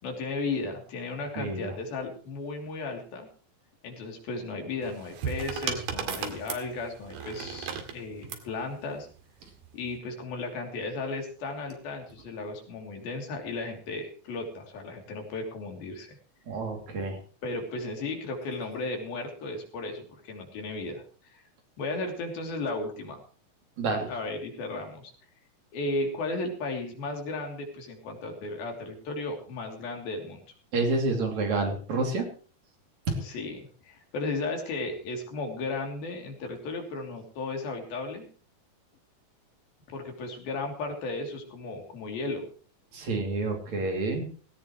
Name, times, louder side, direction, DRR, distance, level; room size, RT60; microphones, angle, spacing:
voice 1, 0.0-3.3 3.8-9.1 9.7-16.1 17.4-21.0 21.3-21.4 21.8-23.2 24.1-25.1 25.7-30.4 33.2-38.3 39.9-42.5, left 3 dB, 75° left, 2 dB, 4.9 m, -35 dB
voice 2, 1.4-1.7 16.5-17.2 23.8-24.1 30.7-32.3 33.1-33.2 42.9-44.3, right 3 dB, 50° right, 3 dB, 4.0 m, -28 dB
sound 1, 4.8-8.5 9.5-9.9, right 7 dB, 90° right, 3.9 m, -35 dB
17.5 x 17.5 x 3.1 m, 0.41 s
omnidirectional pair, 4.2 m